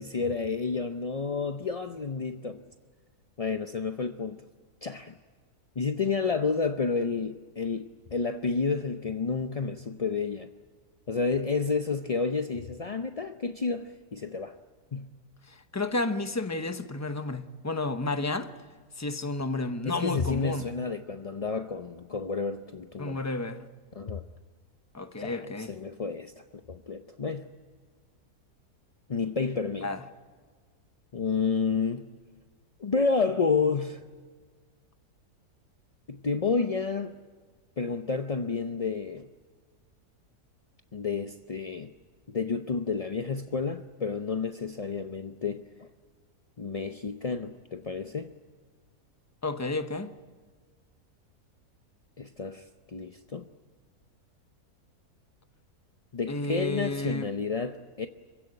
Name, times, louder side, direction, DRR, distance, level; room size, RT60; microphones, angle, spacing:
voice 1, 0.0-2.6 3.4-4.4 4.8-5.1 5.8-10.5 11.1-14.6 14.9-15.1 19.9-23.2 23.9-24.2 25.2-26.3 26.7-27.5 29.1-29.9 31.1-32.1 32.8-34.0 36.1-37.1 37.8-39.3 40.9-41.9 42.3-45.9 46.6-48.3 52.2-53.5 56.1-58.1, left 4 dB, 50° left, 0.4 m, -30 dB
voice 2, 15.5-18.5 19.0-20.7 23.0-23.7 24.9-25.7 29.8-30.0 49.4-50.1 56.3-57.3, left 2 dB, 15° left, 0.7 m, -31 dB
26.0 x 16.0 x 9.9 m
omnidirectional pair, 1.7 m